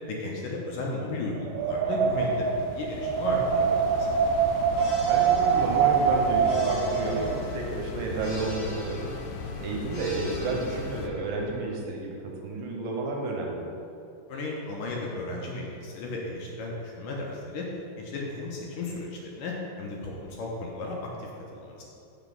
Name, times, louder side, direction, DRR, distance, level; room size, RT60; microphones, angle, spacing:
voice 1, 0.1-4.1 14.3-17.7 18.0-21.8, left 2 dB, 70° left, -2 dB, 2.3 m, -35 dB
Wind, 1.4-7.4, right 6 dB, 90° right, 2.5 m, -24 dB
sound 1, 2.0-11.1, left 4 dB, 90° left, 1.8 m, -38 dB
sound 2, 4.8-11.6, equal, 35° left, 2.3 m, -43 dB
voice 2, 5.1-9.0 9.6-13.7, right 3 dB, 70° right, -1 dB, 2.5 m, -31 dB
8.0 x 6.0 x 5.3 m, 2.6 s
omnidirectional pair, 4.4 m